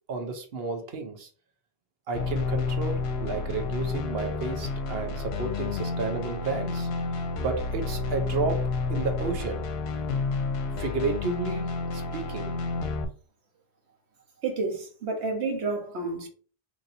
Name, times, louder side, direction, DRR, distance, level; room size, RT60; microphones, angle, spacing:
voice 1, 0.1-1.3 2.1-6.9 7.4-9.6 10.8-11.7 11.9-12.5, right 4 dB, 65° right, 1.0 m, -32 dB
sound 1, 2.1-13.0, left 4 dB, 75° left, 0.8 m, -30 dB
voice 2, 14.4-16.3, right 3 dB, 85° right, 1.2 m, -30 dB
4.1 x 2.9 x 2.6 m
omnidirectional pair, 1.1 m